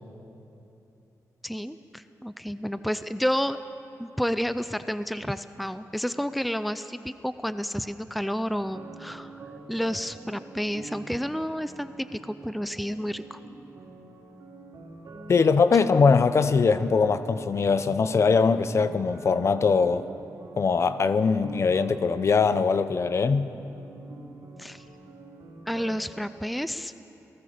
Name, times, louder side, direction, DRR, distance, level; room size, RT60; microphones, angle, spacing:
voice 1, 1.4-3.6 4.0-9.4 9.7-13.4 24.6-24.8 25.7-26.9, equal, ahead, 12 dB, 0.5 m, -30 dB
sound 1, 8.5-26.0, right 3 dB, 70° right, 3.6 m, -45 dB
voice 2, 15.3-20.0 20.6-23.5, left 5 dB, 50° left, 12 dB, 0.7 m, -21 dB
28.0 x 18.5 x 5.1 m, 2.9 s
wide cardioid pair, 125°, 6 cm